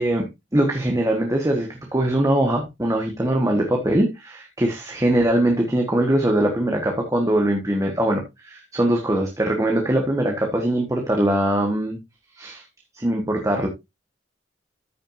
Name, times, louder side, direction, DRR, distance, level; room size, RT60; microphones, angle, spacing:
voice 1, 0.0-12.0 12.4-12.6 12.9-13.7, right 1 dB, 15° right, 1 dB, 1.3 m, -22 dB
14.0 x 6.3 x 2.6 m, 0.21 s
head